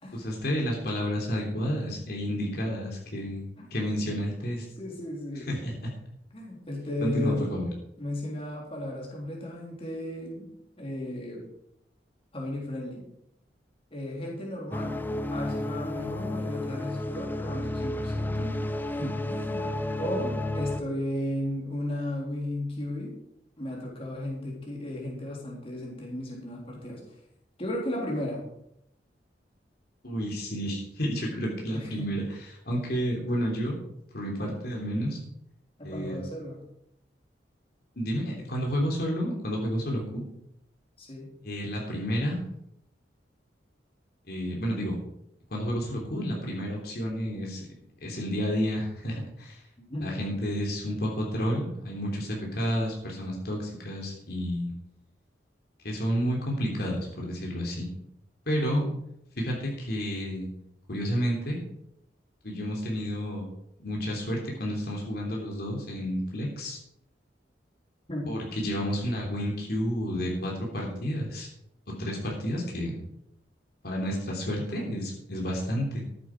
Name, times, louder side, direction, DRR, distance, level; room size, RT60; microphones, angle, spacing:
voice 1, 0.1-3.4 3.7-4.6 5.3-5.9 7.0-7.7 30.0-33.8 34.1-35.2 35.8-36.2 38.0-40.2 41.4-42.4 44.3-45.0 45.5-47.6 48.0-49.6 50.0-54.7 55.8-57.9 58.5-58.8 59.3-60.5 60.9-61.6 62.4-63.5 63.8-66.8 68.3-71.5 72.0-73.0 73.8-76.0, equal, 55° left, -1 dB, 3.3 m, -30 dB
voice 2, 4.8-5.6 6.3-10.5 10.8-11.4 12.3-13.0 13.9-15.0 15.3-18.6 18.9-23.1 23.6-27.0 27.6-28.4 31.7-32.1 35.8-36.6 41.0-41.3 49.8-50.2 68.1-68.3, left 1 dB, 30° left, -3 dB, 3.7 m, -35 dB
sound 1, 14.7-20.8, left 1 dB, 10° left, 0.6 m, -31 dB
13.5 x 10.5 x 4.8 m, 0.77 s
head